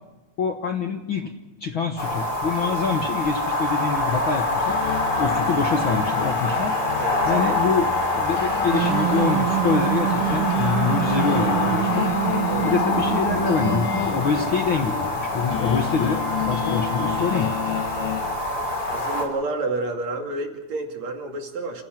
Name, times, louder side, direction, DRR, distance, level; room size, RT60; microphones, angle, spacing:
voice 1, 0.4-1.3 1.6-4.8 5.2-6.7 7.3-12.1 12.6-17.5, left 5 dB, 55° left, 5 dB, 1.5 m, -25 dB
sound 1, 2.0-19.2, left 2 dB, 30° left, 4.3 m, -25 dB
sound 2, 4.7-18.3, left 8 dB, 80° left, 3.1 m, -31 dB
sound 3, 8.7-14.4, right 14 dB, 80° right, 2.9 m, -26 dB
voice 2, 18.9-21.8, right 2 dB, 55° right, 3 dB, 3.5 m, -29 dB
29.5 x 16.0 x 6.1 m, 1.1 s
omnidirectional pair, 3.8 m